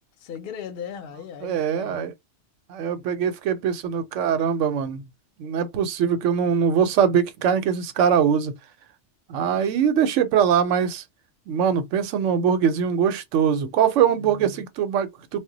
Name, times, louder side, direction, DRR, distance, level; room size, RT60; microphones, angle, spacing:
voice 1, 0.2-2.1 14.2-14.7, left 7 dB, 60° left, 0.8 m, -38 dB
voice 2, 1.4-2.1 2.7-5.0 5.4-8.5 9.3-11.0 11.5-15.4, right 7 dB, 90° right, 0.9 m, -22 dB
2.2 x 2.1 x 3.8 m
omnidirectional pair, 1.2 m